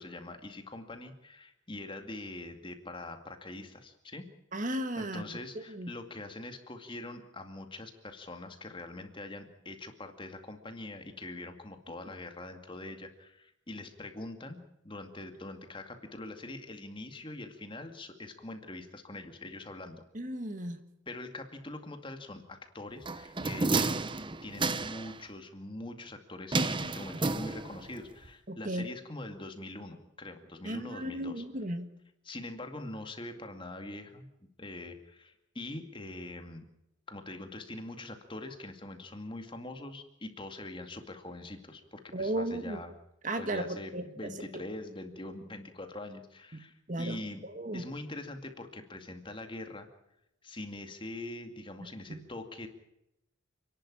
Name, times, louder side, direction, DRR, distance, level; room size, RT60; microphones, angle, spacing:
voice 1, 0.0-4.3 5.0-20.0 21.1-23.9 24.4-31.4 32.2-34.3 34.6-36.7 37.1-42.9 43.4-47.4 47.7-49.9 50.4-52.7, left 2 dB, 25° left, 6 dB, 2.2 m, -43 dB
voice 2, 4.5-5.9 20.1-20.8 28.5-28.8 30.6-31.9 42.1-42.8 43.2-44.6 46.9-47.8 51.8-52.2, right 1 dB, 40° right, 9 dB, 1.7 m, -35 dB
sound 1, 23.1-25.2 26.5-28.0 28.2-28.3, right 3 dB, 25° right, 0.9 m, -31 dB
30.0 x 11.5 x 8.7 m, 0.86 s
head